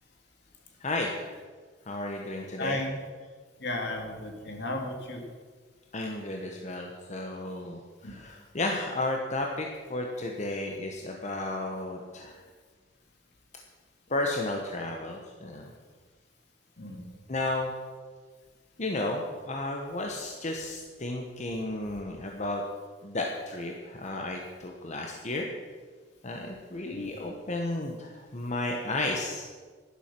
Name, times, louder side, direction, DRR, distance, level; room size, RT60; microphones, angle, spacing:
voice 1, 0.8-1.1 1.9-2.8 5.9-12.4 14.1-15.7 17.3-17.7 18.8-22.6 23.0-25.5 26.2-29.4, left 2 dB, 40° left, 1 dB, 1.1 m, -33 dB
voice 2, 2.6-3.0 3.6-5.2 8.0-8.1 16.8-17.1 26.9-27.1, left 1 dB, 65° left, 3 dB, 2.2 m, -34 dB
11.0 x 10.5 x 6.0 m, 1.5 s
head